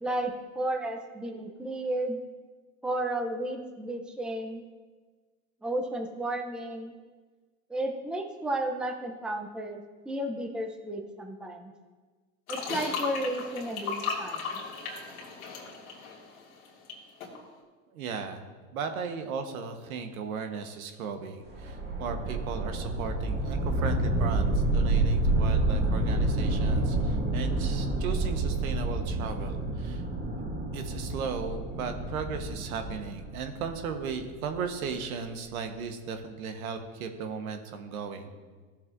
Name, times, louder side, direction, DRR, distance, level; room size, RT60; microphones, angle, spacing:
voice 1, 0.0-2.2 2.8-4.6 5.6-6.9 7.7-11.7 12.5-14.6, right 1 dB, ahead, 3 dB, 0.6 m, -33 dB
sound 1, 12.5-16.9 17.2-17.4, left 5 dB, 90° left, 2.4 m, -36 dB
voice 2, 17.9-30.0 30.7-38.3, right 5 dB, 80° right, 6 dB, 1.2 m, -36 dB
sound 2, 21.5-34.6, right 2 dB, 25° right, 1.7 m, -29 dB
14.5 x 7.3 x 2.6 m, 1.4 s
supercardioid pair, 115°, 42 cm